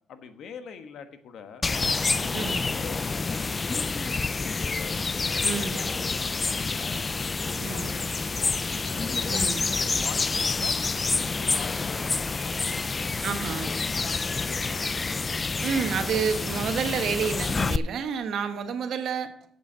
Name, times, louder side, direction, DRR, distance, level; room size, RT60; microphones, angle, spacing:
voice 1, 0.1-1.6 2.1-2.4 2.8-7.0 7.4-8.6 8.8-12.5 13.9-14.8, left 6 dB, 70° left, 8 dB, 1.2 m, -44 dB
sound 1, 1.6-17.8, left 4 dB, 30° left, 0.4 m, -28 dB
voice 2, 2.3-2.6 5.4-5.8 7.6-7.9 9.3-9.6 13.2-13.8 15.6-19.3, right 6 dB, 70° right, 8 dB, 1.2 m, -29 dB
7.9 x 7.2 x 7.5 m, 0.66 s
cardioid pair, 90°, 0 cm